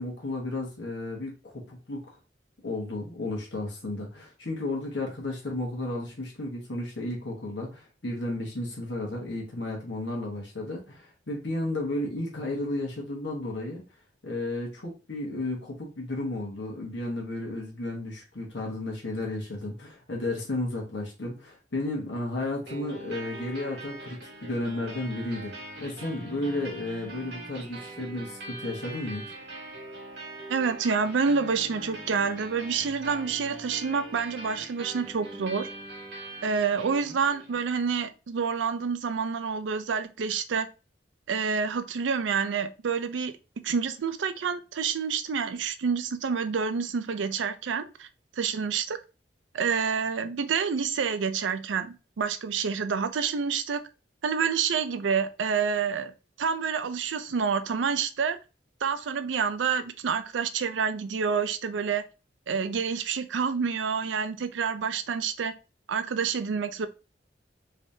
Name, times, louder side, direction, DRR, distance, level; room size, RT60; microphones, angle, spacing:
voice 1, 0.0-2.1 2.6-13.8 14.2-29.2, left 2 dB, 70° left, 1.2 m, -33 dB
sound 1, 22.6-37.6, right 2 dB, 65° right, 1.7 m, -42 dB
voice 2, 30.5-35.7 36.4-40.7 41.3-43.4 43.6-48.1 48.4-49.0 49.5-53.8 54.2-56.1 56.4-58.4 58.8-62.0 62.5-65.5 65.9-66.9, right 6 dB, 85° right, 0.4 m, -28 dB
3.3 x 3.1 x 2.7 m
head